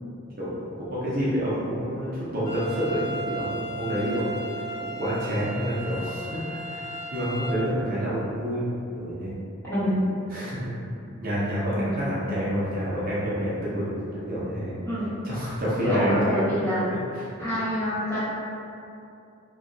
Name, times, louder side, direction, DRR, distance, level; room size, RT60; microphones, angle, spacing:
voice 1, 0.8-4.3 4.6-8.6 8.9-9.4 10.3-10.7 11.2-14.7 15.2-16.3 17.1-17.2, equal, 45° right, -9 dB, 0.6 m, -28 dB
sound 1, 2.5-7.5, right 2 dB, 45° left, 1.5 m, -35 dB
voice 2, 9.6-10.0 14.8-15.1 15.8-16.9 17.4-18.3, equal, 10° left, -14 dB, 1.2 m, -26 dB
3.0 x 2.7 x 2.6 m, 2.6 s
head